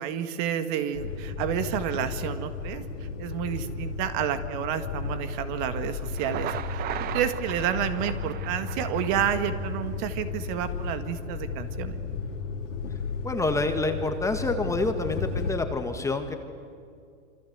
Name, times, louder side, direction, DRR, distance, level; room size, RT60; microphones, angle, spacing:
voice 1, 0.0-2.8 3.2-12.0, right 9 dB, 40° right, 9 dB, 1.9 m, -30 dB
sound 1, 0.9-15.5, left 4 dB, 70° left, 3.4 m, -34 dB
Thunder, 6.0-10.0, right 11 dB, 25° right, 0.9 m, -37 dB
voice 2, 13.2-16.4, left 2 dB, 10° left, 6 dB, 1.8 m, -27 dB
27.0 x 25.5 x 8.2 m, 2.3 s
hypercardioid pair, 135°, 38 cm